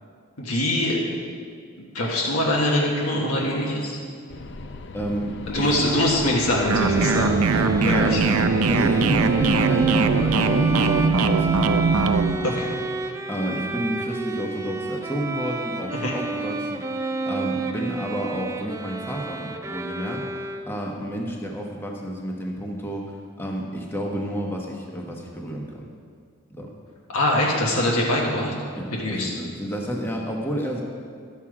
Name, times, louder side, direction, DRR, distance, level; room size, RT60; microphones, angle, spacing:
voice 1, 0.4-1.0 1.9-4.0 5.5-8.2 12.4-12.7 16.0-16.1 27.1-28.5 28.9-29.3, left 1 dB, 85° left, -3 dB, 1.5 m, -23 dB
sound 1, 4.3-9.5, left 2 dB, 55° left, 0.5 m, -37 dB
voice 2, 4.9-5.7 7.2-11.6 12.3-25.9 26.5-26.7 28.8-30.8, equal, 10° left, -1 dB, 1.1 m, -31 dB
Bowed string instrument, 6.3-21.0, right 2 dB, 15° right, 0.4 m, -31 dB
sound 2, 6.7-12.3, right 4 dB, 85° right, 0.5 m, -20 dB
12.0 x 7.3 x 4.9 m, 2.1 s
head